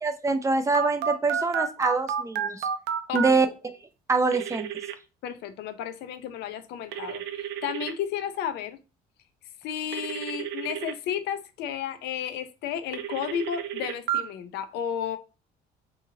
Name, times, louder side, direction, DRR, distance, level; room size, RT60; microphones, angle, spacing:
voice 1, 0.0-2.7 3.1-3.5 4.1-4.7, right 3 dB, 20° right, 0.3 m, -24 dB
Telephone, 0.7-3.3 4.3-4.9 6.9-7.9 9.9-10.9 12.9-14.2, right 8 dB, 85° right, 0.4 m, -31 dB
voice 2, 5.2-8.8 9.6-15.2, left 9 dB, 80° left, 0.4 m, -33 dB
2.8 x 2.6 x 2.7 m
cardioid pair, 110°, 17 cm